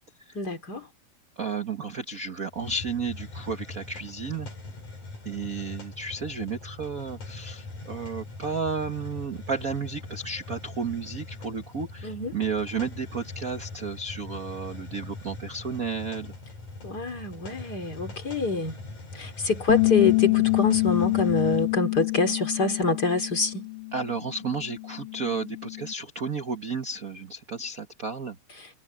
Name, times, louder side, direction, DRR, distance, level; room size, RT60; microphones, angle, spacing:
voice 1, 0.4-0.9 12.0-12.3 16.8-18.8 19.1-23.7, left 3 dB, 35° left, 3.4 m, -26 dB
voice 2, 1.4-4.5 5.2-16.3 23.9-28.3, right 5 dB, 40° right, 1.3 m, -32 dB
Hiss, 2.5-21.8, left 2 dB, 90° left, 7.4 m, -42 dB
Bass guitar, 19.7-25.9, left 26 dB, 65° left, 1.8 m, -26 dB
omnidirectional pair, 3.3 m